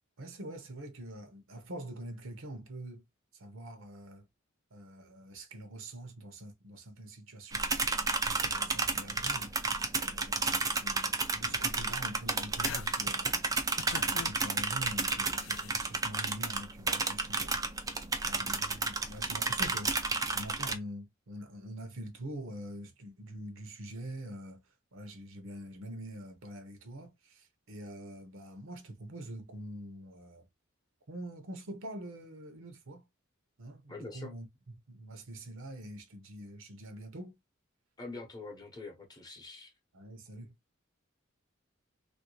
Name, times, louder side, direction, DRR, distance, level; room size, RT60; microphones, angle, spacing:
voice 1, 0.2-3.0 3.3-4.3 4.7-7.6 8.2-9.5 10.0-13.4 13.9-17.5 17.8-17.9 18.3-19.9 20.3-24.6 24.9-30.5 31.1-33.1 33.6-37.4 39.9-40.5, right 1 dB, 65° right, 0.8 m, -45 dB
sound 1, 7.5-20.7, right 3 dB, 15° right, 0.4 m, -32 dB
sound 2, 11.4-11.8 12.3-13.1 13.8-14.3 15.3-15.9, left 7 dB, 70° left, 0.4 m, -44 dB
voice 2, 33.9-34.3 38.0-39.7, left 3 dB, 20° left, 0.8 m, -44 dB
3.1 x 2.6 x 3.0 m
head